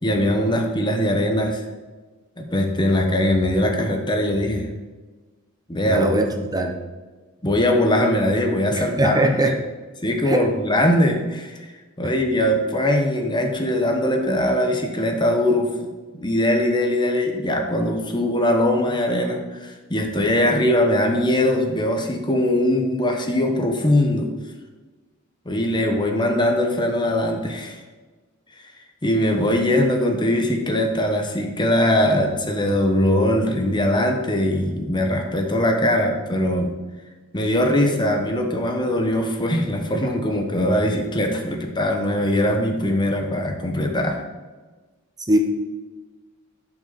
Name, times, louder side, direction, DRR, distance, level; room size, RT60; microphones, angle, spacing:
voice 1, 0.0-1.6 2.4-4.7 5.7-6.1 7.4-9.5 10.0-11.5 12.0-15.9 16.1-24.3 25.5-27.8 29.0-36.7 37.3-44.2, left 1 dB, 20° left, 3 dB, 1.1 m, -21 dB
voice 2, 5.8-6.8 8.7-9.6 10.2-10.5 12.0-12.1 45.3-45.4, right 1 dB, 20° right, 4 dB, 0.8 m, -21 dB
11.0 x 5.9 x 4.1 m, 1.3 s
head